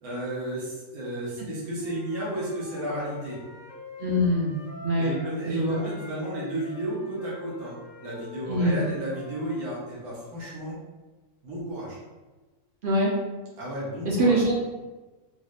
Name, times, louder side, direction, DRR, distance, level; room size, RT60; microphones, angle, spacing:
voice 1, 0.0-3.4 5.0-10.8 11.4-12.0 13.6-14.3, right 1 dB, 90° right, -6 dB, 1.3 m, -33 dB
Wind instrument woodwind instrument, 1.8-5.4 5.7-9.6, left 4 dB, 70° left, 0.9 m, -45 dB
voice 2, 4.0-4.6 4.8-5.1 5.5-5.8 8.5-8.8 12.8-13.1 14.0-14.5, equal, 65° right, -4 dB, 0.5 m, -23 dB
4.2 x 2.0 x 2.4 m, 1.2 s
omnidirectional pair, 1.5 m